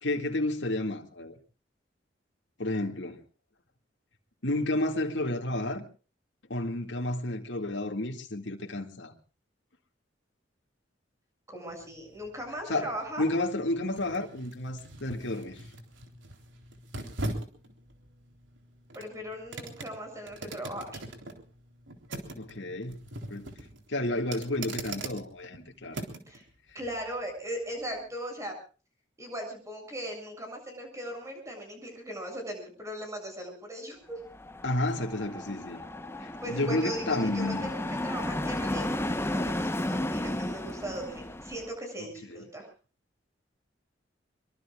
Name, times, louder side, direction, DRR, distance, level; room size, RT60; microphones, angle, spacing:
voice 1, 0.0-1.4 2.6-3.2 4.4-5.8 6.5-9.1 12.7-12.9 13.2-15.6 22.3-23.0 23.3-23.5 23.9-26.1 34.6-35.8 36.2-37.7 42.3-42.4, left 1 dB, 75° left, 2.3 m, -31 dB
voice 2, 11.5-13.3 18.9-21.0 26.3-26.4 26.7-28.6 29.2-34.2 36.4-42.7, equal, 15° right, 7.5 m, -38 dB
sound 1, 11.7-26.4 26.8-27.0, right 2 dB, 90° right, 3.6 m, -42 dB
sound 2, 34.3-41.7, left 1 dB, 15° left, 1.0 m, -33 dB
25.0 x 23.5 x 2.4 m
head